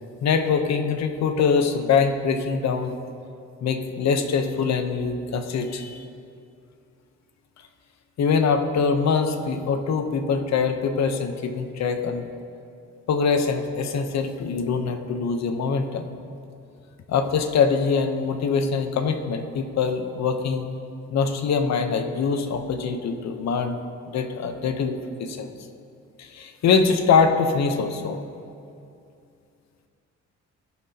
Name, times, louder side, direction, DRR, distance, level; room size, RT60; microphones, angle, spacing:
voice 1, 0.2-2.9 3.6-6.0 8.2-12.3 13.1-16.1 17.1-20.6 21.1-23.8 24.1-25.5 26.2-28.2, left 5 dB, 60° left, 6 dB, 0.9 m, -23 dB
17.0 x 5.9 x 2.9 m, 2.5 s
cardioid pair, 90°, 30 cm